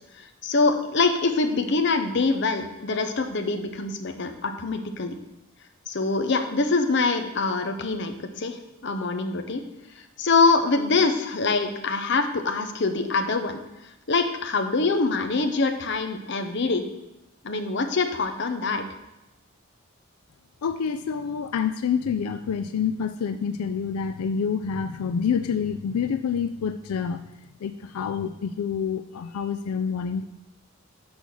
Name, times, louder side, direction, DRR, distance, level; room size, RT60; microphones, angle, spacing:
voice 1, 0.2-5.2 5.9-9.6 10.2-13.6 14.1-16.8 17.4-18.9, left 3 dB, 55° left, 7 dB, 0.7 m, -24 dB
voice 2, 20.6-27.2 27.6-30.2, left 6 dB, 90° left, 10 dB, 0.4 m, -27 dB
6.4 x 5.3 x 6.1 m, 0.93 s
head